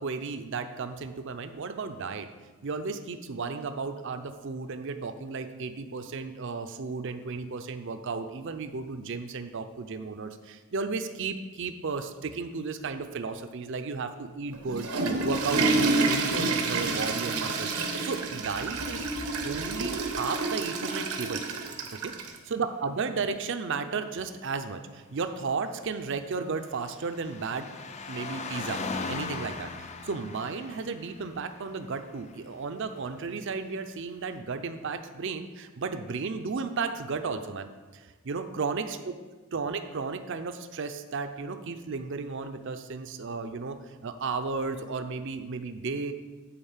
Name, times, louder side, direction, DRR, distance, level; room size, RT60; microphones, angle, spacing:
voice 1, 0.0-2.3 2.6-14.9 15.2-19.1 19.4-21.4 21.9-27.7 28.1-28.8 29.1-39.1 39.5-46.1, right 4 dB, 55° right, 8 dB, 0.5 m, -34 dB
Water / Toilet flush, 14.5-22.4, right 3 dB, 85° right, 1.1 m, -28 dB
sound 1, 25.9-32.6 33.5-33.6, left 3 dB, 30° left, 0.5 m, -39 dB
8.7 x 4.2 x 7.3 m, 1.3 s
head